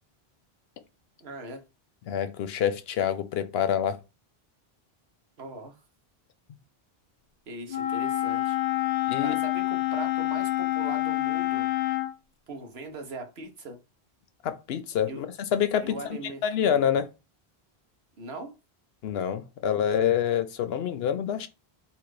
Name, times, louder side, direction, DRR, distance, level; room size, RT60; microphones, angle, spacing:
voice 1, 1.2-1.6 5.4-5.8 7.5-8.6 9.2-11.7 12.5-13.8 15.1-15.2 15.8-16.4 18.2-18.6, right 2 dB, 80° right, 1.3 m, -40 dB
voice 2, 2.1-4.0 9.1-9.3 14.4-15.3 15.5-16.0 16.4-17.1 19.0-21.5, left 9 dB, 80° left, 0.8 m, -26 dB
Wind instrument woodwind instrument, 7.7-12.1, left 16 dB, 55° left, 0.5 m, -27 dB
4.2 x 2.5 x 4.6 m
omnidirectional pair, 1.0 m